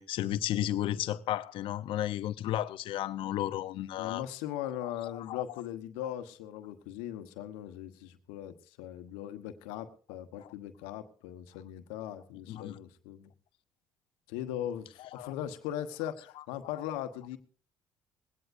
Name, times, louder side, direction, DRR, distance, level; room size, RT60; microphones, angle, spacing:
voice 1, 0.0-4.2 5.1-5.4 10.4-10.5 12.5-12.8 15.1-15.3, left 13 dB, 65° left, 0.7 m, -33 dB
voice 2, 4.0-13.3 14.3-17.4, left 11 dB, 80° left, 1.2 m, -39 dB
20.5 x 17.0 x 2.6 m
hypercardioid pair, 60°, 9 cm